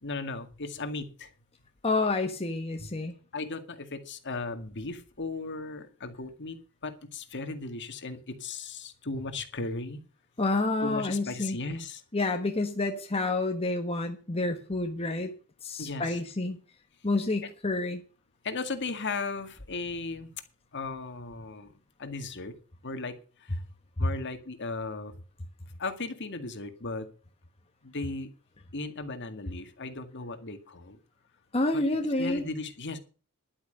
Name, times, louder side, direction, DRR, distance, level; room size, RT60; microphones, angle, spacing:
voice 1, 0.0-1.3 2.8-2.9 3.3-10.0 10.8-12.0 15.8-16.2 18.4-20.3 20.7-21.7 22.0-22.5 22.8-23.6 24.0-25.1 25.8-27.1 27.8-28.3 28.7-31.0 31.7-31.8 32.2-33.0, left 3 dB, 55° left, 8 dB, 2.0 m, -36 dB
voice 2, 1.8-3.1 10.4-11.6 12.1-15.3 15.6-16.6 17.0-18.0 31.5-32.4, left 2 dB, 25° left, 4 dB, 1.3 m, -29 dB
11.5 x 8.7 x 6.5 m, 0.37 s
head